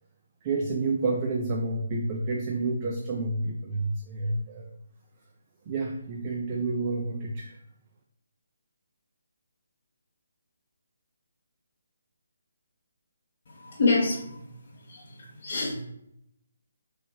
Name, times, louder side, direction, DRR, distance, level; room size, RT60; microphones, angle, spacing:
voice 1, 0.4-4.7 5.7-7.6, right 3 dB, 25° right, 0 dB, 0.3 m, -29 dB
voice 2, 13.5-14.4 14.9-15.8, left 3 dB, 45° left, -5 dB, 0.7 m, -27 dB
3.2 x 2.9 x 2.2 m, 0.78 s
hypercardioid pair, 165°, 0 cm